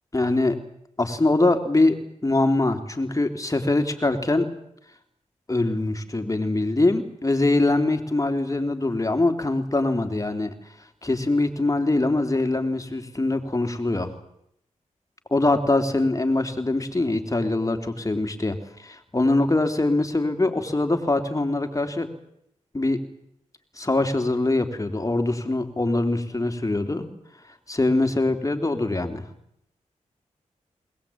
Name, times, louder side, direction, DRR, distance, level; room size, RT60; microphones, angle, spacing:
voice 1, 0.1-0.6 1.0-2.0 2.2-4.5 5.5-10.5 11.0-14.1 15.3-22.1 22.7-23.0 23.8-27.1 27.7-29.2, left 2 dB, 25° left, 6 dB, 3.5 m, -23 dB
21.0 x 20.0 x 8.8 m, 0.75 s
cardioid pair, 50°, 13 cm